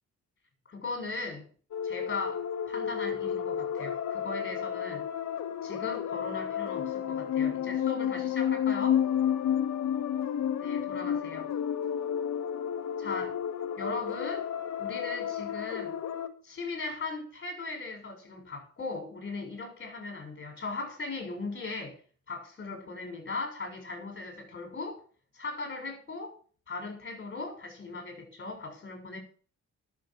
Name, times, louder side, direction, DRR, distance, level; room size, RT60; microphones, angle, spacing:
voice 1, 0.7-1.5 1.8-5.1 5.6-9.0 10.6-11.5 13.0-13.4 13.8-14.4 14.8-16.0 16.4-22.0 22.3-25.0 25.3-26.4 26.7-29.2, left 3 dB, 35° left, 6.8 m, -38 dB
sound 1, 1.7-16.3, left 9 dB, 65° left, 1.5 m, -31 dB
12.0 x 7.2 x 8.7 m
cardioid pair, 90°, 30 cm